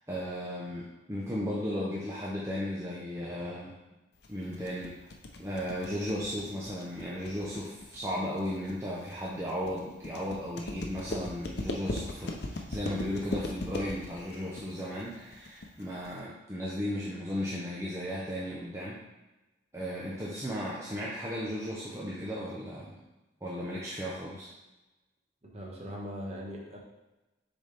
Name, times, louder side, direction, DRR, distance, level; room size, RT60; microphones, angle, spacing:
voice 1, 0.1-3.7 4.3-4.9 5.4-19.0 19.7-23.0 23.4-24.5, equal, 15° right, -6 dB, 0.8 m, -35 dB
sound 1, 4.2-16.2, left 2 dB, 60° left, 0.7 m, -39 dB
voice 2, 25.4-26.8, equal, 35° right, -3 dB, 1.3 m, -40 dB
6.9 x 4.1 x 3.4 m, 1.1 s
head